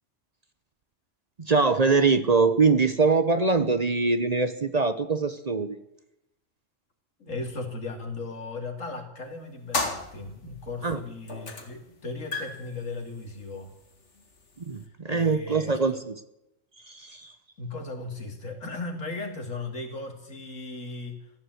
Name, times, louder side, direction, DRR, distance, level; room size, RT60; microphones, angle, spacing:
voice 1, 1.4-5.8 10.8-11.0 14.6-16.2 16.8-17.3, right 4 dB, 35° right, 11 dB, 0.9 m, -23 dB
voice 2, 7.2-13.7 15.1-16.0 17.6-21.3, left 3 dB, 90° left, 3 dB, 3.1 m, -37 dB
sound 1, 9.7-10.7 11.3-11.8 12.1-14.8, left 3 dB, 70° left, 2.3 m, -34 dB
15.5 x 11.0 x 7.9 m, 0.83 s
omnidirectional pair, 1.3 m